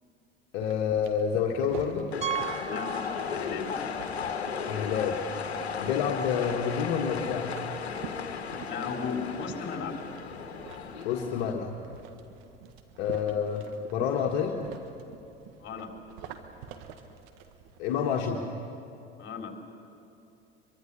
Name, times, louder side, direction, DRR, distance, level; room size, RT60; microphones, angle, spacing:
voice 1, 0.5-2.1 4.7-5.2 5.8-7.5 11.0-11.7 13.0-13.7 13.9-14.6 17.8-18.4, left 7 dB, 65° left, 0 dB, 1.7 m, -28 dB
sound 1, 0.6-17.8, right 7 dB, 65° right, 1.8 m, -47 dB
sound 2, 2.1-11.5, left 6 dB, 80° left, 1.4 m, -35 dB
Piano, 2.2-3.8 4.1-4.2 4.8-4.9 5.2-5.3 7.3-7.4, right 9 dB, 20° right, 1.0 m, -36 dB
voice 2, 2.6-3.7 8.5-10.0 15.6-15.9 19.2-19.7, left 5 dB, 35° left, 2 dB, 4.0 m, -36 dB
24.5 x 23.5 x 6.9 m, 2.8 s
figure-of-eight pair, 70°, 31 cm